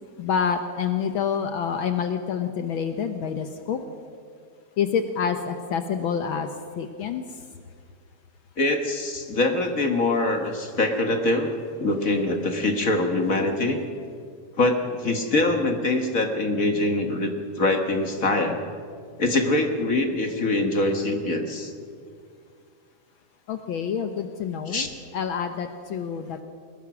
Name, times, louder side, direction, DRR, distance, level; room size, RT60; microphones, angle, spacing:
voice 1, 0.2-3.8 4.8-7.5 23.5-24.9 25.1-26.4, left 7 dB, 85° left, 7 dB, 1.1 m, -27 dB
voice 2, 8.6-11.5 11.8-13.8 14.6-18.6 19.2-21.7 24.7-24.9, left 2 dB, 40° left, 4 dB, 1.2 m, -24 dB
22.5 x 19.5 x 6.1 m, 2.2 s
omnidirectional pair, 3.4 m